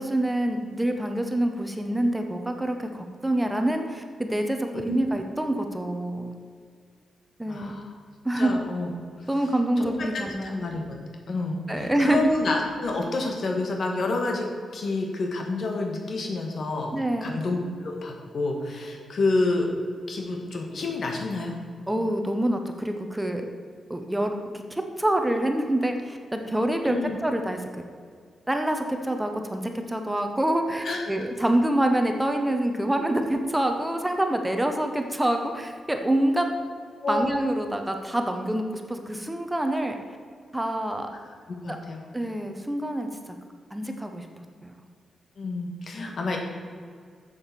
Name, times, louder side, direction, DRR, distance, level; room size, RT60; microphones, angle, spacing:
voice 1, 0.0-6.4 7.4-7.8 8.2-8.6 9.3-10.6 11.7-12.3 16.9-17.4 21.9-23.5 23.9-27.8 28.5-36.5 37.1-40.0 40.5-41.1 41.7-41.8 42.1-43.3 43.7-44.3 44.6-44.7 46.0-46.2, right 1 dB, 10° right, 5 dB, 1.0 m, -26 dB
voice 2, 7.5-7.9 8.4-8.9 9.8-11.0 11.3-14.5 14.7-19.7 20.1-21.6 26.8-27.2 30.8-31.1 37.0-37.3 41.5-42.1 45.4-46.4, left 2 dB, 65° left, 2 dB, 1.8 m, -29 dB
7.1 x 7.0 x 7.0 m, 2.1 s
cardioid pair, 65°, 0 cm